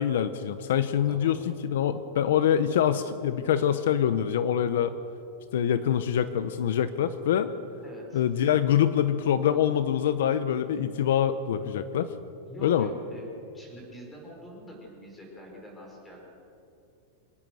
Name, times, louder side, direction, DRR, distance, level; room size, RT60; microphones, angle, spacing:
voice 1, 0.0-4.9 5.5-7.5 8.1-12.1 12.6-12.9, left 9 dB, 70° left, 11 dB, 1.0 m, -25 dB
voice 2, 7.8-8.2 12.5-16.3, equal, 10° left, -1 dB, 5.5 m, -45 dB
26.0 x 18.5 x 6.4 m, 2.8 s
supercardioid pair, 160°, 0 cm